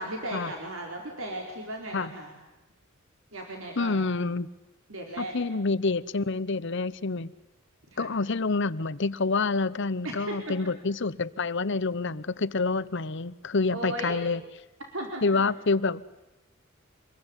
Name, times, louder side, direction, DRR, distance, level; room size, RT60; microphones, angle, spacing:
voice 1, 0.0-2.3 3.3-4.1 4.9-5.3 7.9-8.1 10.0-10.6 13.7-14.2 14.9-15.4, right 1 dB, 70° right, 1 dB, 4.6 m, -36 dB
voice 2, 3.8-4.5 5.2-7.3 8.0-14.4 15.2-16.1, left 3 dB, 60° left, 16 dB, 0.9 m, -27 dB
26.5 x 22.0 x 9.9 m, 1.0 s
head